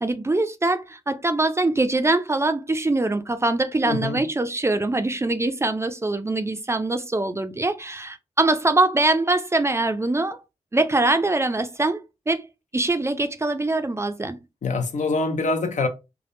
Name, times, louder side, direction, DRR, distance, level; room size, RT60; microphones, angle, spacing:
voice 1, 0.0-10.4 10.7-12.5 12.7-14.4, right 2 dB, 20° right, 0.4 m, -23 dB
voice 2, 3.9-4.2 14.6-15.9, left 3 dB, 70° left, 0.6 m, -24 dB
3.4 x 2.1 x 2.5 m
wide cardioid pair, 85°, 13 cm